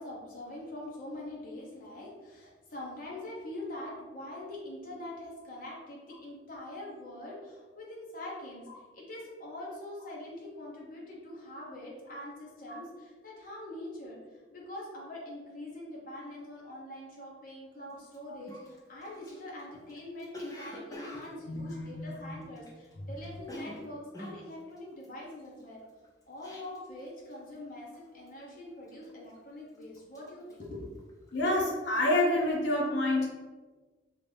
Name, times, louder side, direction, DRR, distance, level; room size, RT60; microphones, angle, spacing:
voice 1, 0.0-8.7 8.9-14.2 14.5-25.8 26.3-30.8 31.1-31.2 31.4-31.5, left 1 dB, 50° left, -4 dB, 0.9 m, -44 dB
Cough, 18.1-18.2 18.5-22.9 23.2-27.0 27.3-27.7 27.9-28.4 28.9-29.5 29.8-31.5 31.8-32.1, left 1 dB, 20° left, 0.5 m, -47 dB
voice 2, 21.5-22.3 31.3-33.3, left 1 dB, 80° left, -2 dB, 0.9 m, -28 dB
3.1 x 2.5 x 3.3 m, 1.3 s
head